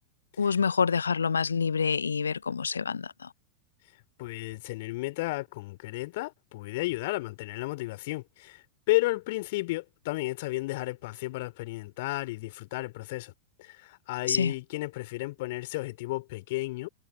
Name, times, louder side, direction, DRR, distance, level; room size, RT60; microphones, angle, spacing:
voice 1, 0.4-3.3 14.3-14.5, left 6 dB, 75° left, 0.5 m, -27 dB
voice 2, 4.2-13.3 13.6-16.9, left 20 dB, 50° left, 3.5 m, -33 dB
figure-of-eight pair, 90°, 0 cm